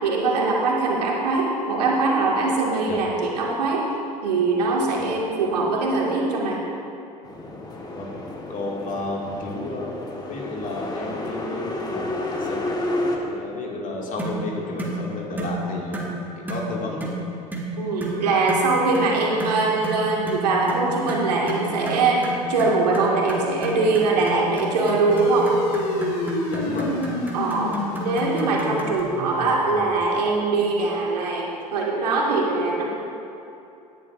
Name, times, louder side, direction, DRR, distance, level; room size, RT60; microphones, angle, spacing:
voice 1, 0.0-3.9 4.2-6.6 17.8-22.2 22.5-25.5 27.3-27.7 28.0-32.8, right 3 dB, 75° right, -3 dB, 2.3 m, -22 dB
sound 1, 7.2-13.2, left 2 dB, 20° left, 1.7 m, -30 dB
voice 2, 8.5-10.0 10.3-12.6 13.3-16.1 16.5-17.2 26.5-26.9, left 2 dB, 40° left, -2 dB, 2.5 m, -32 dB
sound 2, 14.2-14.4 14.8-15.0 15.4-15.6 15.9-16.1 16.5-16.7 17.0-17.2 17.5-17.7 18.0-18.2 18.5-18.7 18.9-19.1 19.4-29.0, right 2 dB, 10° right, 2.3 m, -32 dB
sound 3, 25.1-30.0, left 2 dB, 60° left, 1.9 m, -29 dB
18.0 x 11.0 x 2.7 m, 2.8 s
figure-of-eight pair, 70°, 21 cm